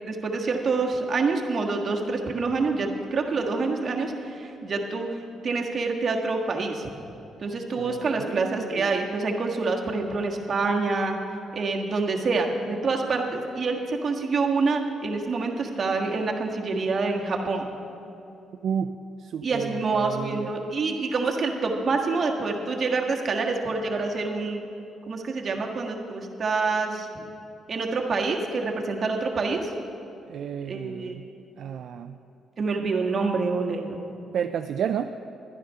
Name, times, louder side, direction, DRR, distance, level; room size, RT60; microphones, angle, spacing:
voice 1, 0.0-5.2 5.4-6.9 7.4-11.2 11.5-17.6 19.4-24.6 25.1-27.2 27.7-29.7 30.6-31.2 32.6-33.9, right 3 dB, 45° right, 1 dB, 1.5 m, -27 dB
voice 2, 7.8-8.9 18.6-18.9 19.2-20.5 30.3-31.2 31.6-32.2 34.3-35.1, right 8 dB, 65° right, 8 dB, 0.3 m, -31 dB
12.0 x 10.0 x 5.5 m, 2.9 s
cardioid pair, 90°, 0 cm